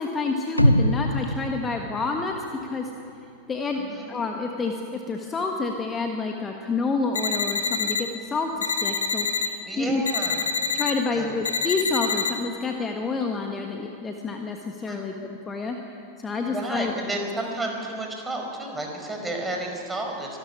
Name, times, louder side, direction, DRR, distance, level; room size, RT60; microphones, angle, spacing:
voice 1, 0.0-2.3 2.6-2.9 3.5-10.0 10.7-15.8 16.2-16.9, left 4 dB, 20° left, 3 dB, 1.5 m, -28 dB
sound 1, 0.6-2.7 3.1-3.2, equal, 90° left, 0.7 m, -23 dB
voice 2, 3.7-4.1 9.6-10.5 11.1-11.4 14.9-15.2 16.4-20.4, right 1 dB, 10° right, 2 dB, 5.0 m, -32 dB
sound 2, 7.2-8.0 8.6-9.5 10.1-10.9 11.4-12.3, left 5 dB, 65° left, 2.0 m, -26 dB
24.5 x 13.0 x 10.0 m, 2.8 s
figure-of-eight pair, 90°, 0 cm